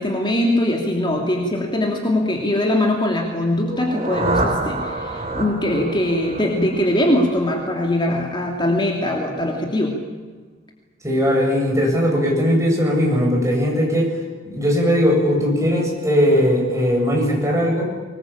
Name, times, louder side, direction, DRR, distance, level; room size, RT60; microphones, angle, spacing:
voice 1, 0.0-10.0, left 1 dB, 25° left, 1 dB, 2.9 m, -21 dB
sound 1, 3.6-7.5, right 2 dB, 35° right, 3.9 m, -27 dB
voice 2, 11.0-14.1 14.5-17.8, equal, 15° right, -1 dB, 7.8 m, -19 dB
24.5 x 20.5 x 8.8 m, 1.4 s
head